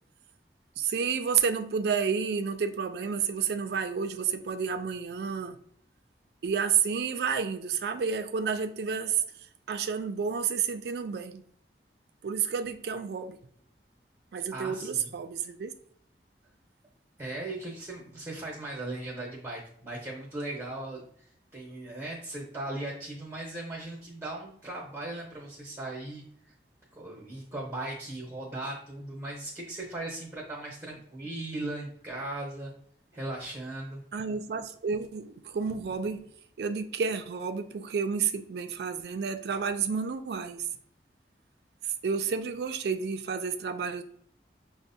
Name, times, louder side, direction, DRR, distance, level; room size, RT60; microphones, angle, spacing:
voice 1, 0.8-5.5 6.4-9.2 9.7-11.4 12.2-13.4 14.3-15.7 34.1-36.2 36.6-40.7 42.0-44.0, right 6 dB, 65° right, 8 dB, 0.3 m, -30 dB
voice 2, 14.5-15.1 17.2-21.1 21.5-26.2 27.0-32.7 33.1-34.0, right 2 dB, 15° right, -3 dB, 0.7 m, -38 dB
5.9 x 2.0 x 2.6 m, 0.64 s
head